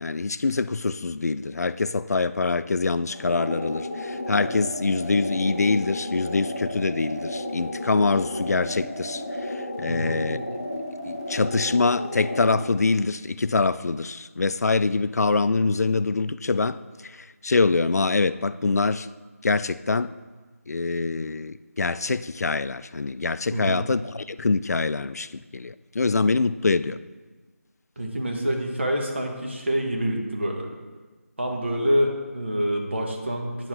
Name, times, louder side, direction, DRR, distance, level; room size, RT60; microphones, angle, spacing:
voice 1, 0.0-10.4 11.0-16.8 17.0-19.1 19.4-20.1 20.7-27.0, left 3 dB, 80° left, 0.3 m, -24 dB
sound 1, 3.1-12.7, left 1 dB, 15° left, 0.6 m, -33 dB
voice 2, 9.9-10.2 23.5-23.8 28.0-30.7 31.4-33.7, equal, 45° right, 1.4 m, -26 dB
9.6 x 7.4 x 3.7 m
figure-of-eight pair, 175°, 8 cm